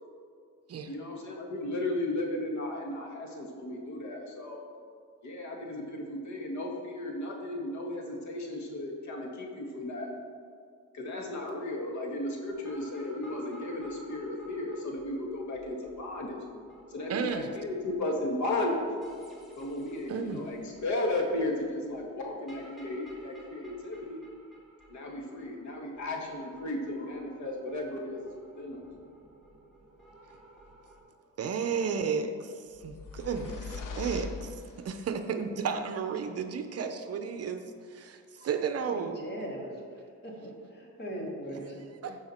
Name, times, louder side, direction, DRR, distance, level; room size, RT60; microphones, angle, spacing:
voice 1, 0.9-4.6 5.2-10.1 10.9-16.4 16.9-18.8 19.6-24.2 24.9-28.8, left 1 dB, 65° left, 0 dB, 1.7 m, -35 dB
sound 1, 12.5-31.0, right 1 dB, ahead, 1.7 m, -54 dB
voice 2, 17.1-17.5 20.1-20.4 31.4-39.2 42.0-42.2, right 6 dB, 50° right, 8 dB, 0.7 m, -33 dB
sound 2, 32.7-35.1, left 4 dB, 85° left, 1.0 m, -41 dB
voice 3, 38.9-41.8, equal, 35° left, -2 dB, 2.2 m, -40 dB
14.0 x 4.9 x 4.4 m, 2.1 s
cardioid pair, 125°, 31 cm